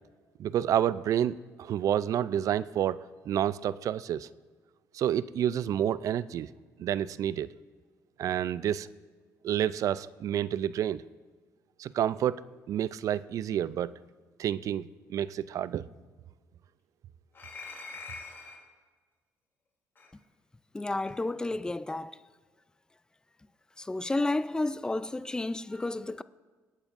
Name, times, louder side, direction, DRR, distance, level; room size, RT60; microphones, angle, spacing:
voice 1, 0.4-3.0 3.3-4.3 4.9-6.5 6.8-7.5 8.2-8.9 9.4-11.0 11.8-12.4 12.7-13.9 14.4-15.8, right 10 dB, 60° right, 0.4 m, -29 dB
sound 1, 17.3-18.7 20.0-20.1 21.0-21.2, left 4 dB, 35° left, 2.7 m, -44 dB
voice 2, 20.7-22.2 23.8-26.2, left 2 dB, 10° left, 0.4 m, -31 dB
24.0 x 8.8 x 2.5 m
cardioid pair, 85°, 7 cm